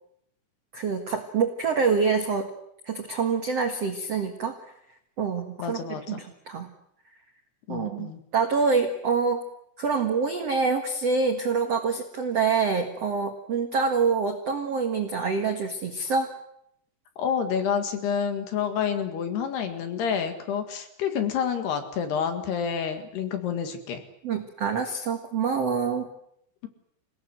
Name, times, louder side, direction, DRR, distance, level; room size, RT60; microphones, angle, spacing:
voice 1, 0.7-2.5 2.8-4.6 5.2-5.8 6.1-6.7 7.7-9.4 9.8-16.3 24.2-26.1, right 5 dB, 70° right, 4 dB, 1.5 m, -26 dB
voice 2, 5.6-6.2 7.7-8.2 17.2-24.0, left 7 dB, 60° left, 7 dB, 3.7 m, -28 dB
28.0 x 18.0 x 7.9 m, 0.74 s
omnidirectional pair, 5.6 m